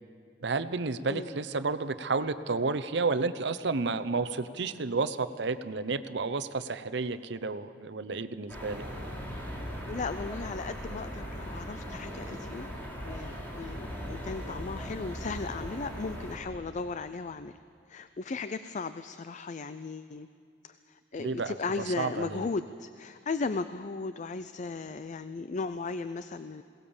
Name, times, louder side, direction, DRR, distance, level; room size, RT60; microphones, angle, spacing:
voice 1, 0.4-8.8 21.2-21.5 22.0-22.5, right 4 dB, 65° right, 11 dB, 0.8 m, -31 dB
sound 1, 8.5-16.4, equal, 10° left, 3.8 m, -39 dB
voice 2, 9.9-17.6 17.9-20.3 20.6-26.6, left 4 dB, 40° left, 12 dB, 0.4 m, -36 dB
22.0 x 18.0 x 7.1 m, 2.5 s
head